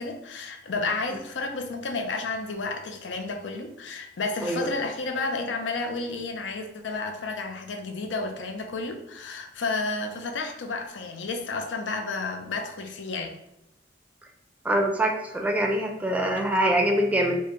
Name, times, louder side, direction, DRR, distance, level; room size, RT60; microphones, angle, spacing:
voice 1, 0.0-13.3, left 3 dB, 85° left, 5 dB, 0.5 m, -31 dB
voice 2, 14.6-17.4, right 1 dB, 10° right, 1 dB, 0.4 m, -24 dB
4.6 x 2.1 x 2.9 m, 0.85 s
head